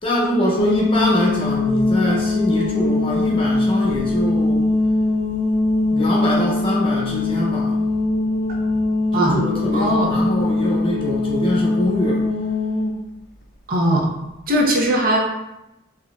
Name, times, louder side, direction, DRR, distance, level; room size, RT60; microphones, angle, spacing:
voice 1, 0.0-4.7 5.9-7.7 9.1-12.2, equal, 25° left, -4 dB, 0.8 m, -23 dB
sound 1, 0.6-12.9, left 2 dB, 40° left, 0.4 m, -21 dB
voice 2, 9.1-9.4 9.7-10.1 13.7-14.1 14.5-15.2, right 1 dB, 45° right, 0 dB, 0.6 m, -19 dB
4.5 x 2.8 x 2.3 m, 0.93 s
head